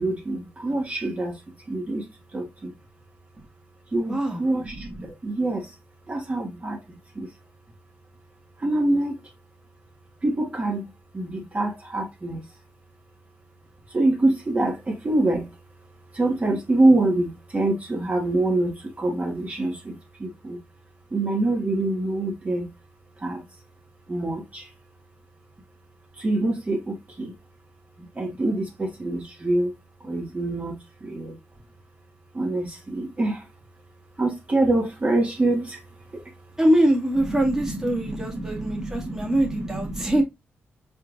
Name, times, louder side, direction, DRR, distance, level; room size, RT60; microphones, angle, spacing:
voice 1, 0.0-1.4 1.7-2.7 3.9-5.7 6.1-7.3 8.6-9.2 10.2-12.4 13.9-15.5 16.1-20.6 21.1-22.7 23.2-23.5 24.1-24.7 26.1-27.4 28.0-29.7 30.0-31.4 32.3-33.5 34.2-35.8 36.1-36.3 37.2-40.2, right 2 dB, 30° right, 1.9 m, -26 dB
voice 2, 4.0-4.4 36.6-40.2, right 1 dB, 10° right, 1.8 m, -23 dB
4.5 x 4.5 x 2.6 m
cardioid pair, 65°, 5 cm